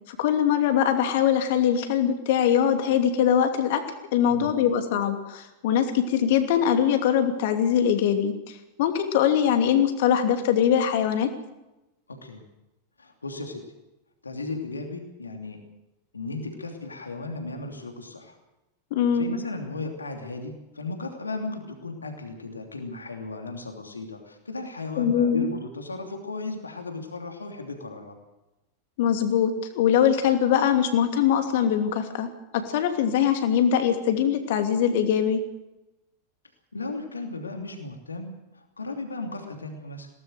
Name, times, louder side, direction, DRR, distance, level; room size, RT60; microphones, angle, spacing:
voice 1, 0.1-3.8 4.1-11.3 18.9-19.3 25.0-25.4 29.0-32.3 32.5-35.4, left 9 dB, 50° left, 7 dB, 2.7 m, -22 dB
voice 2, 4.3-4.6 12.1-12.4 13.0-13.8 14.2-15.6 16.1-18.4 19.1-28.2 36.7-40.1, left 3 dB, 75° left, 4 dB, 3.0 m, -35 dB
21.5 x 18.0 x 6.6 m, 0.96 s
figure-of-eight pair, 90°, 0 cm